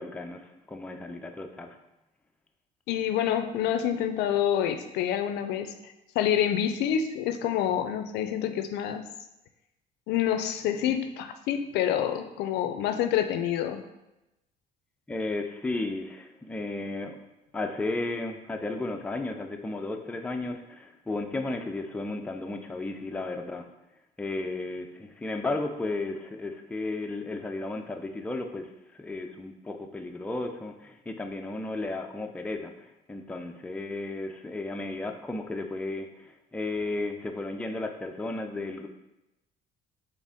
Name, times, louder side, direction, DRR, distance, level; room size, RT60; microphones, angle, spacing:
voice 1, 0.0-1.8 15.1-17.2 17.5-23.7 24.2-28.7 28.9-38.9, left 2 dB, 5° left, 4 dB, 0.4 m, -34 dB
voice 2, 2.9-9.0 10.1-13.8, left 9 dB, 85° left, 9 dB, 0.4 m, -27 dB
4.1 x 3.4 x 3.6 m, 0.92 s
cardioid pair, 110°, 17 cm